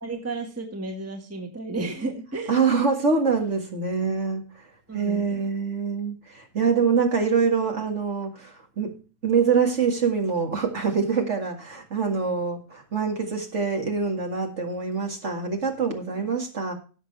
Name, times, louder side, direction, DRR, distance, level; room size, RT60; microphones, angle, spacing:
voice 1, 0.0-2.5 4.9-5.5, right 3 dB, 10° right, 3 dB, 1.5 m, -33 dB
voice 2, 2.5-4.4 4.9-8.9 9.2-16.7, right 5 dB, 45° right, 2 dB, 2.2 m, -25 dB
16.5 x 6.9 x 3.3 m, 0.37 s
omnidirectional pair, 1.8 m